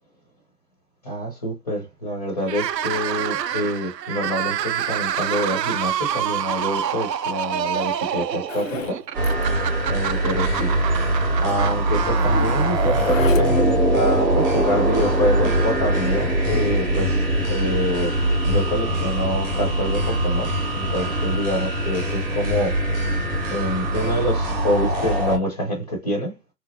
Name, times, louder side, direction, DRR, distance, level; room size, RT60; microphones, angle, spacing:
voice 1, 1.0-9.0 9.9-10.7 11.4-18.2 18.4-22.8 23.5-26.3, equal, 25° left, 1.0 m, -26 dB
sound 1, 2.4-13.7, right 9 dB, 80° right, 0.6 m, -27 dB
Zipper (clothing), 8.5-9.0 9.2-9.4 9.7-9.8 10.2-10.3 11.1-11.2 11.5-13.7, left 5 dB, 55° left, 0.7 m, -34 dB
sound 2, 9.1-25.4, right 1 dB, 10° right, 1.2 m, -22 dB
3.5 x 3.2 x 2.6 m
hypercardioid pair, 160°, 49 cm